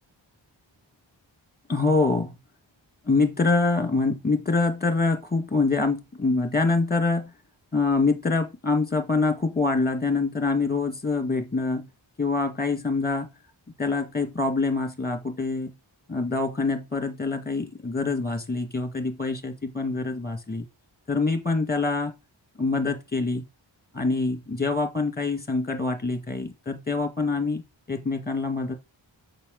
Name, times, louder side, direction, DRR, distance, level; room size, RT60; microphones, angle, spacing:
voice 1, 1.7-2.3 3.1-7.3 7.7-11.9 12.2-13.3 13.8-15.7 16.1-20.7 21.1-22.1 22.6-23.4 23.9-27.6 27.9-28.8, left 3 dB, 20° left, 1.6 m, -25 dB
6.8 x 5.5 x 3.8 m
wide cardioid pair, 45°, 48 cm